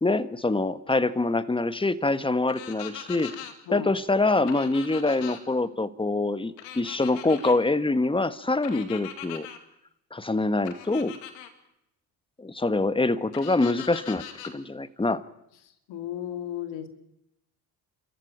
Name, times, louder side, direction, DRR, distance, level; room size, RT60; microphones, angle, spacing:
voice 1, 0.0-3.3 3.7-9.5 10.1-11.2 12.4-15.2, left 2 dB, 10° left, 13 dB, 1.4 m, -25 dB
sound 1, 2.5-3.5 4.5-5.4 6.6-7.6 8.6-9.6 10.6-11.5 13.3-14.5, left 10 dB, 85° left, 2.4 m, -41 dB
voice 2, 15.9-16.9, left 11 dB, 65° left, 7 dB, 2.7 m, -34 dB
29.5 x 14.0 x 8.8 m, 0.82 s
hypercardioid pair, 65°, 47 cm